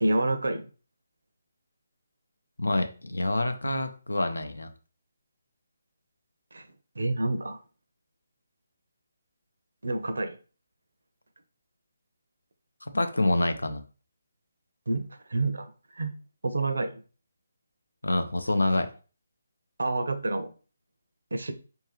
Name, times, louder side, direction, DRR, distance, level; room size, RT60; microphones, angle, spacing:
voice 1, 0.0-0.7 6.5-6.6 7.0-7.6 9.8-10.4 14.9-16.1 16.4-17.0 19.8-20.5 21.3-21.5, right 2 dB, 60° right, 0.6 m, -28 dB
voice 2, 2.6-4.7 12.8-13.8 18.0-18.9, left 2 dB, 70° left, 0.6 m, -27 dB
4.6 x 2.7 x 3.2 m
figure-of-eight pair, 145°, 0 cm